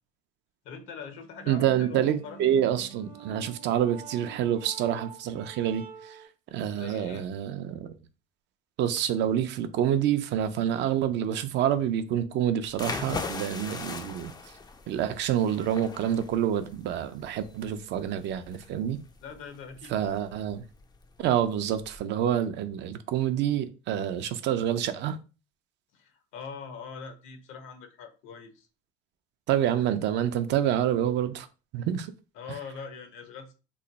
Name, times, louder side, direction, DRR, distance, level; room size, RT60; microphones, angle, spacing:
voice 1, 0.6-2.4 6.7-7.3 19.2-20.0 25.9-28.7 32.3-33.5, left 6 dB, 70° left, 0.8 m, -42 dB
sound 1, 1.2-6.3, right 8 dB, 90° right, 0.9 m, -46 dB
voice 2, 1.5-6.2 6.5-7.9 8.8-14.3 14.9-19.0 19.9-20.6 21.2-25.2 29.5-31.5 31.7-32.1, right 10 dB, 55° right, 0.5 m, -27 dB
sound 2, 12.7-22.0, left 4 dB, 20° left, 0.4 m, -40 dB
3.1 x 2.2 x 3.9 m
supercardioid pair, 95°, 21 cm